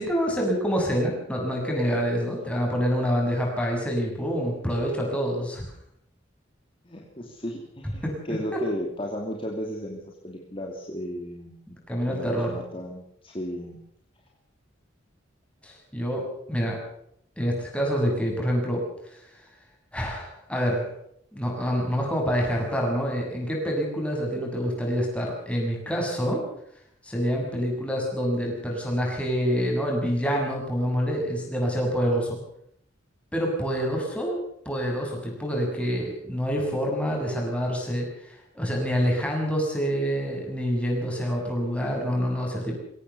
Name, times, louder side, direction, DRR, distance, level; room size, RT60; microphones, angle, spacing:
voice 1, 0.0-5.6 8.0-8.1 11.9-12.5 15.6-16.8 17.4-18.8 19.1-19.2 19.9-20.9 21.3-26.4 27.0-32.4 33.3-34.4 34.7-42.7, equal, 5° left, -1 dB, 7.1 m, -27 dB
voice 2, 6.8-11.5 12.1-13.8, equal, 30° left, 0 dB, 2.9 m, -34 dB
23.0 x 17.0 x 7.0 m, 0.71 s
head